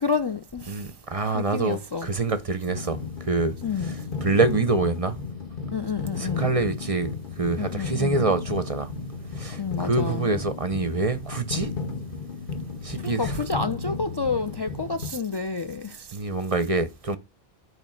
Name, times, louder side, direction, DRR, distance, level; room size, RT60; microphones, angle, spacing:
voice 1, 0.0-0.9 1.3-2.1 3.6-3.9 5.7-6.5 7.6-8.2 9.6-10.3 13.0-16.2, left 4 dB, 35° left, 0.4 m, -29 dB
voice 2, 0.7-3.6 3.8-5.2 6.2-8.9 9.3-11.7 12.8-13.4 16.1-17.2, right 3 dB, 40° right, 0.6 m, -26 dB
sound 1, 2.7-15.1, left 4 dB, 55° left, 1.4 m, -34 dB
8.7 x 3.2 x 6.2 m
omnidirectional pair, 1.1 m